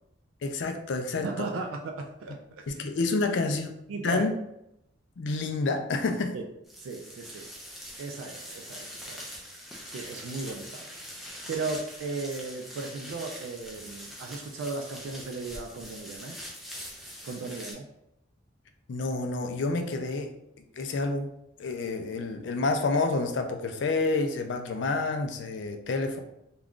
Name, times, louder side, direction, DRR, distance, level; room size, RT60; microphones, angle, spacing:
voice 1, 0.4-1.5 2.7-3.7 4.0-4.3 5.2-6.3 18.9-20.3 20.8-21.3 21.6-26.2, left 3 dB, 65° left, 5 dB, 0.4 m, -28 dB
voice 2, 1.2-3.3 3.9-4.3 6.3-6.4 6.8-7.5 8.0-9.4 9.8-10.9 11.5-16.4 17.2-17.9, right 3 dB, 90° right, 3 dB, 0.3 m, -36 dB
sound 1, 6.7-17.7, equal, ahead, 0.4 m, -43 dB
2.4 x 2.2 x 3.6 m, 0.82 s
head